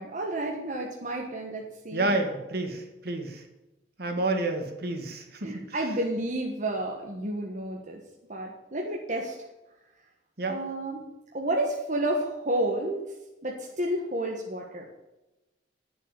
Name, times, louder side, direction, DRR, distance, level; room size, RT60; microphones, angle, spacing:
voice 1, 0.0-2.2 5.4-8.0 8.3-9.3 10.5-11.0 11.3-13.0 13.4-14.9, right 1 dB, 45° right, 0 dB, 1.4 m, -31 dB
voice 2, 1.9-3.4 4.0-5.5 10.4-10.6, right 2 dB, 60° right, 4 dB, 1.9 m, -29 dB
9.7 x 7.3 x 6.9 m, 1.0 s
head